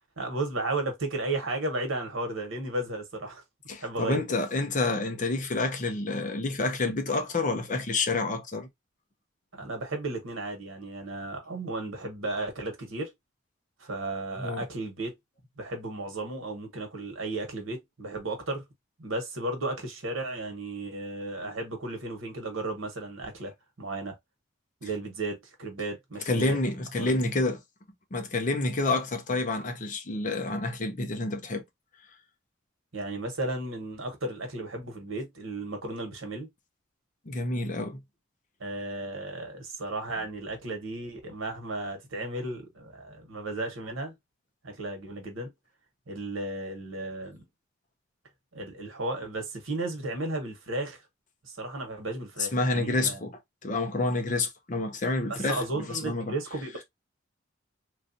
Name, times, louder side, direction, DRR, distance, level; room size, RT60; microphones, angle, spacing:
voice 1, 0.2-3.4 3.8-4.2 9.5-13.1 13.8-15.2 15.6-18.6 19.0-23.5 23.8-24.1 24.8-26.6 27.0-27.2 32.9-36.5 38.6-44.1 44.6-45.5 46.1-47.4 48.5-51.0 51.4-53.2 55.3-56.8, right 2 dB, 80° right, 1.2 m, -34 dB
voice 2, 3.7-8.7 14.4-14.6 26.3-27.6 28.1-31.6 37.3-38.0 52.5-56.3, left 2 dB, 40° left, 0.6 m, -28 dB
3.1 x 2.6 x 2.6 m
head